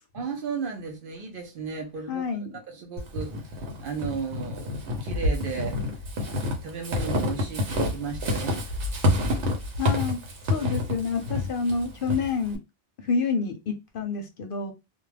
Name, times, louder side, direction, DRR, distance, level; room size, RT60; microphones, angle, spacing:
voice 1, 0.1-2.3 2.5-5.8 6.6-8.7, right 5 dB, 60° right, 0.7 m, -34 dB
voice 2, 2.1-2.6 9.8-10.2 10.5-12.6 13.0-14.7, left 5 dB, 60° left, 0.7 m, -28 dB
Walk footsteps / Squeak, 3.0-12.6, left 1 dB, 85° right, 1.0 m, -28 dB
2.3 x 2.2 x 3.2 m
omnidirectional pair, 1.1 m